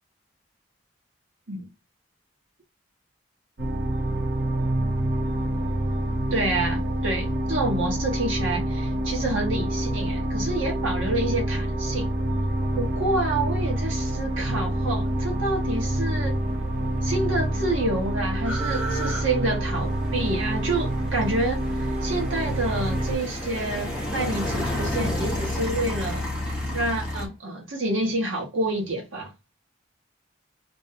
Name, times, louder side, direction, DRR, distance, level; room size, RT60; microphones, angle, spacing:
sound 1, 3.6-23.2, right 1 dB, 55° right, 0.6 m, -27 dB
voice 1, 6.3-12.1 12.7-16.4 17.0-26.2 26.7-29.3, right 2 dB, 80° right, 1.1 m, -28 dB
sound 2, 16.6-16.7 16.9-27.3, left 1 dB, 5° right, 0.7 m, -31 dB
2.6 x 2.2 x 2.7 m
head